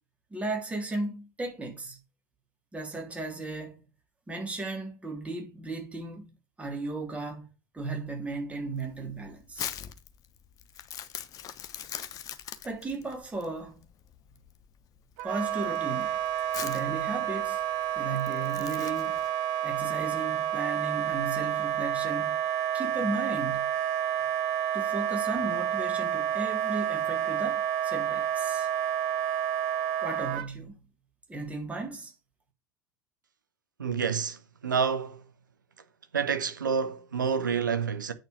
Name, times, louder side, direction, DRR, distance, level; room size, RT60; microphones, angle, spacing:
voice 1, 0.3-2.0 2.7-3.8 4.3-7.5 7.7-9.7 12.6-13.8 15.2-16.2 16.6-17.6 17.9-19.2 19.6-22.4 22.7-23.7 24.7-28.7 30.0-30.8 31.3-32.1, right 2 dB, 15° right, 3.3 m, -35 dB
Crumpling crinkling, 8.8-19.3, left 10 dB, 35° left, 1.0 m, -42 dB
Wind instrument woodwind instrument, 15.2-30.5, right 11 dB, 55° right, 1.0 m, -29 dB
voice 2, 33.8-35.3 36.1-38.1, right 6 dB, 75° right, 1.0 m, -28 dB
8.8 x 4.6 x 6.1 m
figure-of-eight pair, 75°, 10 cm